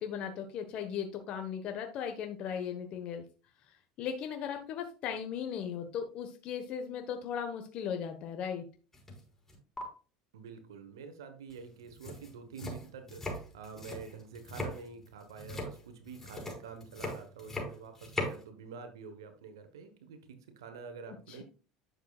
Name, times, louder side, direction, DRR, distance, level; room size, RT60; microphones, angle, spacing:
voice 1, 0.0-3.2 4.0-8.6 21.3-21.4, left 8 dB, 55° left, 5 dB, 1.2 m, -37 dB
sound 1, 8.9-9.2 9.5-9.8 11.5-11.6 11.9-18.4, left 1 dB, 15° left, 4.6 m, -40 dB
voice 2, 10.3-21.4, right 6 dB, 90° right, 8 dB, 1.2 m, -47 dB
10.5 x 6.8 x 2.4 m, 0.35 s
hypercardioid pair, 90°, 2 cm